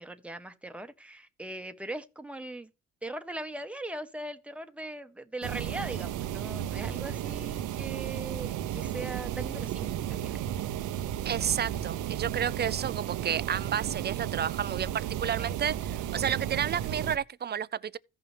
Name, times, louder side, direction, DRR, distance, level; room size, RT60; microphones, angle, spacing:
voice 1, 0.0-2.7 3.0-10.3, right 1 dB, 5° right, 1.1 m, -40 dB
sound 1, 5.4-17.2, right 11 dB, 85° right, 0.8 m, -34 dB
voice 2, 11.2-18.0, right 8 dB, 35° right, 0.5 m, -31 dB
15.5 x 5.5 x 3.4 m
cardioid pair, 90°, 30 cm